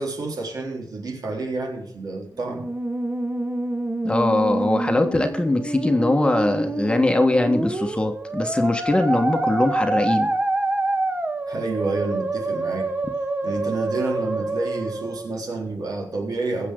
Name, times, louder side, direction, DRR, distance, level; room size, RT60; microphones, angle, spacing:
voice 1, 0.0-2.7 11.5-12.9 13.4-16.7, right 3 dB, 65° right, 3.8 m, -29 dB
Musical instrument, 2.4-15.4, right 2 dB, 25° right, 1.6 m, -27 dB
voice 2, 4.0-10.3, left 2 dB, 15° left, 1.4 m, -21 dB
22.0 x 7.6 x 3.8 m
wide cardioid pair, 145°, 7 cm